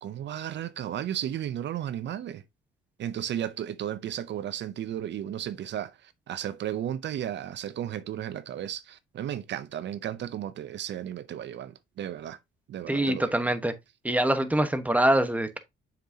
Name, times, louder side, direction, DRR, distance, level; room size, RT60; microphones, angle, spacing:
voice 1, 0.0-2.4 3.0-12.4 12.7-13.3, right 10 dB, 65° right, 0.6 m, -34 dB
voice 2, 12.9-13.7 14.0-15.6, right 1 dB, 5° right, 1.1 m, -24 dB
7.2 x 5.9 x 2.8 m
cardioid pair, 90°, 20 cm